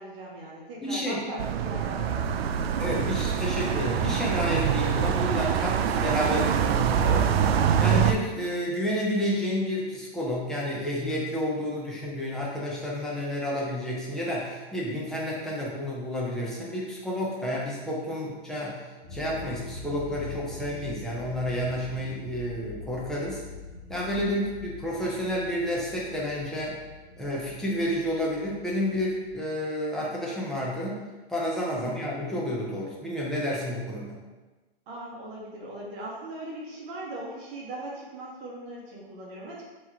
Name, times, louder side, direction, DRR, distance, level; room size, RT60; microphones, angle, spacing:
voice 1, 0.0-2.4 17.5-17.8 24.2-24.5 31.7-32.1 34.9-39.7, right 1 dB, 35° right, -4 dB, 1.0 m, -40 dB
voice 2, 0.8-1.2 2.8-7.3 7.8-18.8 19.1-23.4 23.9-26.8 27.2-31.0 31.3-34.2, equal, ahead, -5 dB, 0.6 m, -30 dB
sound 1, 1.4-8.1, right 8 dB, 70° right, 0.4 m, -25 dB
sound 2, 19.0-29.3, left 4 dB, 50° left, 1.3 m, -43 dB
3.5 x 3.1 x 4.6 m, 1.2 s
hypercardioid pair, 140°, 31 cm